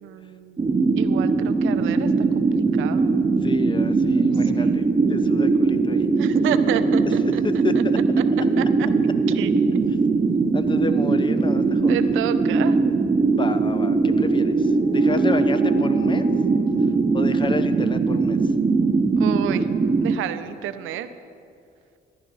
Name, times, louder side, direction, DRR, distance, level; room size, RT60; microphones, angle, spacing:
voice 1, 0.0-0.7 1.0-3.3 4.5-4.9 6.2-7.8 8.6-9.5 11.9-12.8 19.2-19.7 20.0-21.1, right 11 dB, 90° right, 11 dB, 0.6 m, -31 dB
sound 1, 0.6-20.2, right 4 dB, 25° right, 0.6 m, -20 dB
voice 2, 3.4-4.8 5.1-6.1 7.6-7.7 10.5-12.0 13.3-14.6 14.9-16.3 17.1-18.4, left 3 dB, 25° left, 11 dB, 0.7 m, -30 dB
sound 2, 14.5-19.3, left 1 dB, 55° left, 1.9 m, -41 dB
15.0 x 11.5 x 4.0 m, 2.4 s
cardioid pair, 90°, 20 cm